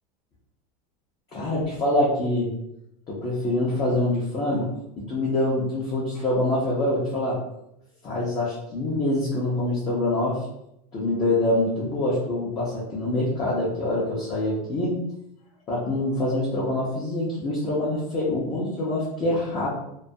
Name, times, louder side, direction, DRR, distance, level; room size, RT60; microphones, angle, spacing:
voice 1, 1.3-2.5 3.1-7.4 8.0-10.4 10.9-15.0 15.7-19.7, left 1 dB, 20° left, -7 dB, 0.4 m, -25 dB
2.2 x 2.2 x 2.6 m, 0.81 s
supercardioid pair, 160°, 20 cm